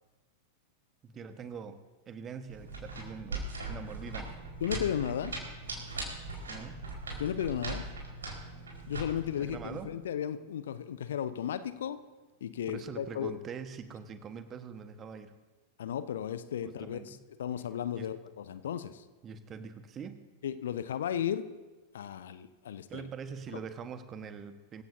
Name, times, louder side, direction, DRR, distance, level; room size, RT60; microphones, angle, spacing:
voice 1, 1.0-1.8 2.1-4.3 6.5-6.8 9.4-10.0 12.7-15.3 16.6-17.2 17.9-18.1 19.2-20.2 22.9-24.8, right 6 dB, 25° right, 9 dB, 1.3 m, -43 dB
sound 1, 2.5-9.8, right 2 dB, 70° right, 4.7 m, -40 dB
voice 2, 4.6-5.4 7.2-7.8 8.9-12.0 12.4-13.4 15.8-19.0 20.4-21.5 21.9-23.1 23.5-23.6, left 9 dB, 60° left, 13 dB, 0.7 m, -35 dB
25.0 x 15.5 x 2.7 m, 1.3 s
figure-of-eight pair, 90°, 0 cm